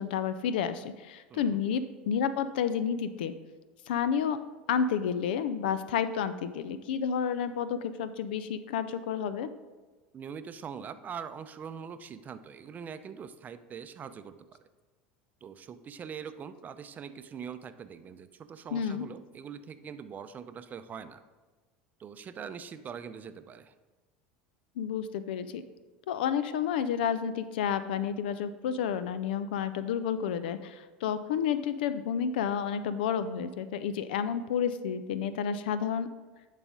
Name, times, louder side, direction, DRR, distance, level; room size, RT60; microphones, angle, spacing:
voice 1, 0.0-3.3 3.9-4.4 4.7-9.5 18.7-19.0 24.8-25.6 26.1-36.1, left 7 dB, 75° left, 13 dB, 0.4 m, -30 dB
voice 2, 1.3-1.6 10.1-14.3 15.4-21.2 22.0-23.7, right 7 dB, 30° right, 11 dB, 0.5 m, -43 dB
10.5 x 4.1 x 3.6 m, 1.3 s
hypercardioid pair, 85°, 5 cm